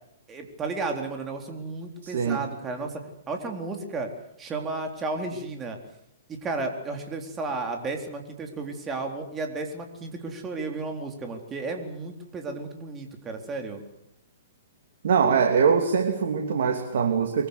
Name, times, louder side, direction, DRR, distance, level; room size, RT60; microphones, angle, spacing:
voice 1, 0.3-4.1 4.4-5.8 6.3-13.8, right 3 dB, 20° right, 4 dB, 3.9 m, -33 dB
voice 2, 2.0-2.4 15.0-17.5, right 6 dB, 60° right, 4 dB, 2.9 m, -23 dB
24.0 x 23.5 x 8.2 m, 0.78 s
figure-of-eight pair, 115°, 0 cm